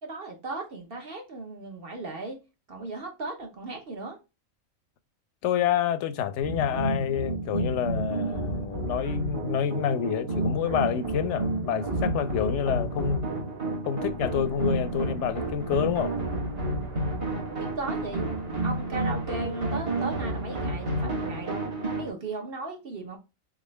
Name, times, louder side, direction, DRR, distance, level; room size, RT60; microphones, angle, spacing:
voice 1, 0.0-2.4 2.7-4.2 17.6-18.2 18.6-21.7 22.0-23.2, right 3 dB, 45° right, 1.2 m, -36 dB
voice 2, 5.4-13.3 13.9-16.2, left 9 dB, 70° left, 0.8 m, -28 dB
sound 1, 6.4-22.1, right 2 dB, 25° right, 1.0 m, -30 dB
sound 2, 7.7-14.1, right 1 dB, 10° right, 0.7 m, -50 dB
sound 3, 14.0-20.0, equal, 90° right, 1.3 m, -47 dB
3.7 x 3.7 x 3.1 m
omnidirectional pair, 1.4 m